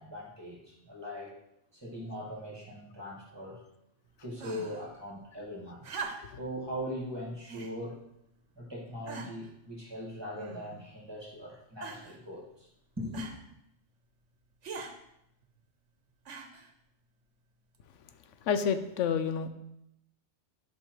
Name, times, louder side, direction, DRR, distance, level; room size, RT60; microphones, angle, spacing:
voice 1, 0.0-1.3 1.7-3.6 4.2-5.9 6.4-8.0 8.5-12.7 13.0-13.3, equal, 20° right, -3 dB, 1.8 m, -40 dB
sound 1, 4.4-4.9 5.8-6.5 7.5-7.8 8.5-8.6 9.1-9.5 10.3-10.9 11.8-12.2 13.1-13.4 14.6-14.9 16.2-16.7 17.7-17.8, right 4 dB, 80° right, 1.2 m, -42 dB
voice 2, 18.4-19.5, left 7 dB, 85° left, 10 dB, 0.9 m, -29 dB
11.0 x 5.6 x 3.1 m, 0.79 s
omnidirectional pair, 1.2 m